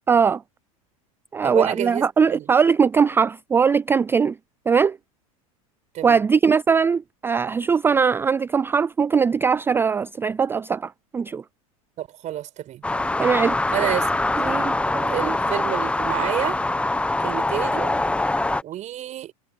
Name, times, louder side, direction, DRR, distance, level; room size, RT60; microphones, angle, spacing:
voice 1, 0.1-0.4 1.3-4.4 4.7-5.0 6.0-11.4 13.2-13.9 14.4-15.1, right 6 dB, 10° right, 0.3 m, -20 dB
voice 2, 1.4-2.0 2.3-2.5 5.9-6.2 12.0-12.8 13.7-14.1 14.4-14.7 15.1-16.6 17.2-17.9 18.6-19.3, right 12 dB, 40° right, 6.8 m, -29 dB
sound 1, 12.8-18.6, left 2 dB, 5° left, 1.2 m, -23 dB
hypercardioid pair, 110°, 19 cm